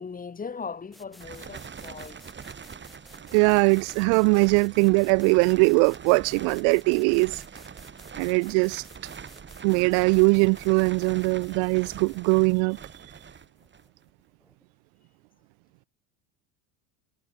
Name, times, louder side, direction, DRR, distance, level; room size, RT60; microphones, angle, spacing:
voice 1, 0.0-2.3, left 5 dB, 20° left, 1.5 m, -38 dB
sound 1, 0.9-14.6, equal, ahead, 5.3 m, -55 dB
sound 2, 1.2-14.0, right 6 dB, 25° right, 4.3 m, -43 dB
voice 2, 3.3-7.4 8.2-8.9 9.6-12.8, right 40 dB or more, 60° right, 0.5 m, -21 dB
supercardioid pair, 100°, 45 cm